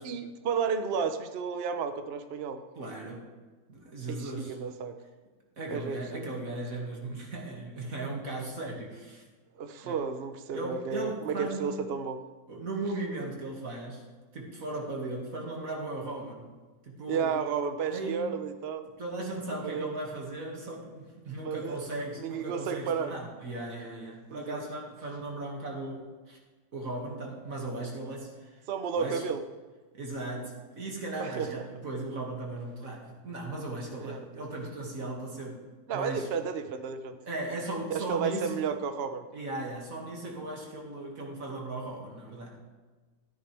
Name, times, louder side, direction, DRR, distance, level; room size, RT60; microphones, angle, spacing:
voice 1, 0.0-2.6 4.1-5.0 5.7-6.3 9.6-12.2 17.1-18.9 19.6-19.9 21.4-21.9 22.2-23.1 24.3-24.6 28.7-29.4 31.2-31.6 34.0-34.2 35.9-37.2 37.9-39.3, right 6 dB, 85° right, 8 dB, 0.5 m, -32 dB
voice 2, 2.8-3.3 3.7-4.6 5.6-9.2 9.8-10.0 10.5-11.7 12.5-14.0 14.3-16.5 16.8-17.3 17.8-18.3 19.0-26.4 26.7-28.6 28.9-29.2 29.9-35.6 35.9-36.3 37.2-38.5 39.3-42.6, right 2 dB, 45° right, -1 dB, 2.4 m, -37 dB
13.0 x 9.9 x 3.4 m, 1.3 s
omnidirectional pair, 2.0 m